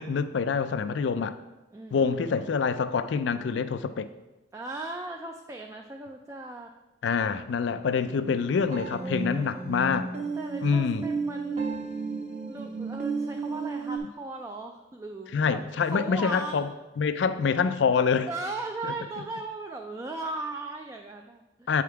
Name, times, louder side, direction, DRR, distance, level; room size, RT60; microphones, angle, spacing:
voice 1, 0.0-1.4 1.9-4.1 7.0-10.1 10.6-11.0 15.3-16.7 17.0-18.3 18.8-18.9 21.7-21.8, left 5 dB, 70° left, 12 dB, 0.4 m, -26 dB
voice 2, 4.5-6.7 8.9-9.5 10.3-11.8 12.5-16.6 18.3-21.7, right 2 dB, 15° right, 2 dB, 0.3 m, -37 dB
sound 1, 8.2-14.0, right 4 dB, 40° right, 0.8 m, -33 dB
8.3 x 3.6 x 4.6 m, 1.1 s
head